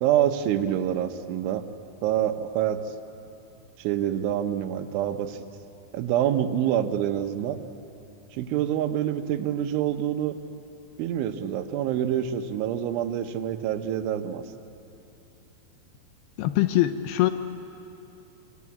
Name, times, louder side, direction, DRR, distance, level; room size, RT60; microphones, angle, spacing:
voice 1, 0.0-1.6 2.0-2.8 3.8-5.4 5.9-7.6 8.3-10.4 11.0-14.4, right 10 dB, 85° right, 7 dB, 3.5 m, -26 dB
voice 2, 16.4-17.3, left 15 dB, 85° left, 9 dB, 2.2 m, -22 dB
28.0 x 24.0 x 8.6 m, 2.8 s
omnidirectional pair, 5.4 m